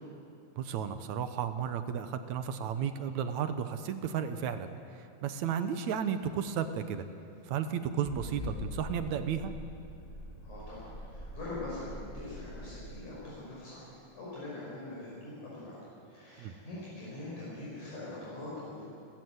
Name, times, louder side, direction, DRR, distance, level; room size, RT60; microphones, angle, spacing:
voice 1, 0.6-4.7 4.9-7.0 7.5-9.5 16.4-16.5, right 8 dB, 70° right, 9 dB, 2.0 m, -33 dB
sound 1, 8.0-13.1, equal, 15° left, 2.2 m, -43 dB
voice 2, 10.4-15.8 16.0-18.8, left 2 dB, 60° left, -7 dB, 7.0 m, -43 dB
29.5 x 13.5 x 8.0 m, 2.6 s
omnidirectional pair, 3.9 m